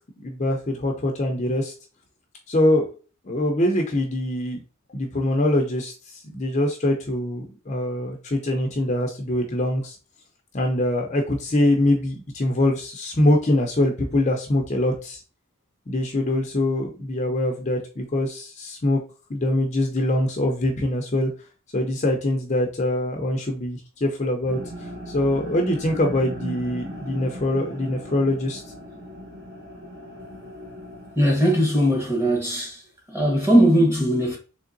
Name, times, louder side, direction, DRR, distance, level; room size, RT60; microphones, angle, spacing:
voice 1, 0.2-1.7 2.5-2.9 3.2-4.6 4.9-10.0 10.5-15.2 15.9-19.0 19.3-21.3 21.7-28.6, left 1 dB, 30° left, 0.5 m, -23 dB
sound 1, 24.5-31.2, equal, 45° right, 1.0 m, -38 dB
voice 2, 31.2-32.8 33.1-34.4, equal, 10° right, 1.0 m, -19 dB
3.6 x 3.2 x 2.5 m
head